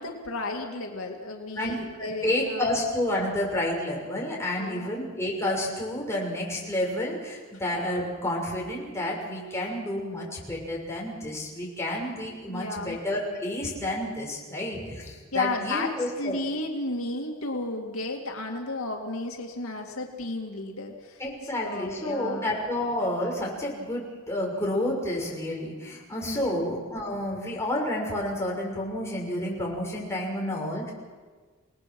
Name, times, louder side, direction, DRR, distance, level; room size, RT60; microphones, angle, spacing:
voice 1, 0.0-2.8 4.6-5.0 12.5-13.0 15.3-22.5 26.3-26.7, left 2 dB, 85° left, 2 dB, 2.5 m, -33 dB
voice 2, 1.5-16.3 21.2-30.9, left 1 dB, 15° left, -3 dB, 6.2 m, -30 dB
28.5 x 19.5 x 6.2 m, 1.4 s
head